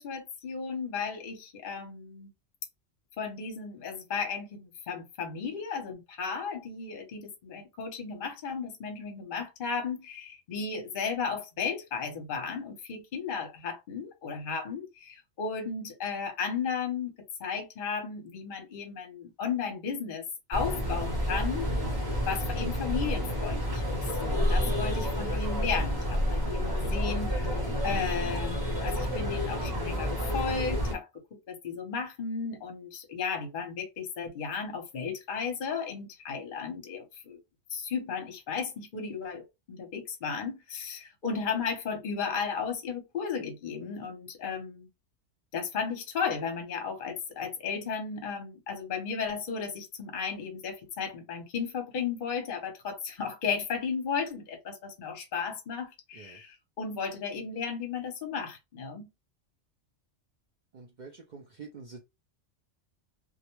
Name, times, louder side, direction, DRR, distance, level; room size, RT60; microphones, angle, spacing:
voice 1, 0.0-2.3 3.2-17.1 17.4-20.2 20.5-21.7 22.3-27.6 27.8-31.1 31.5-37.4 37.7-39.4 39.7-44.9 45.5-59.1, left 6 dB, 45° left, 0.8 m, -34 dB
sound 1, 20.5-30.9, equal, 20° right, 0.7 m, -29 dB
voice 2, 60.7-62.0, right 4 dB, 85° right, 0.4 m, -47 dB
2.4 x 2.1 x 3.0 m
omnidirectional pair, 1.3 m